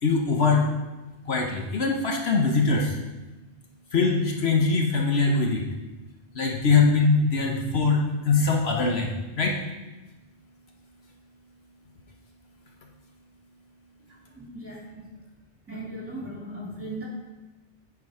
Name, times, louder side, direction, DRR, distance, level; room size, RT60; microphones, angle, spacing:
voice 1, 0.0-0.7 1.3-3.0 3.9-5.6 6.3-9.1 9.4-9.5, left 4 dB, 65° left, 1 dB, 1.1 m, -22 dB
voice 2, 14.1-15.2 15.7-17.0, right 1 dB, 10° right, -4 dB, 2.3 m, -38 dB
9.6 x 4.9 x 4.8 m, 1.1 s
omnidirectional pair, 1.1 m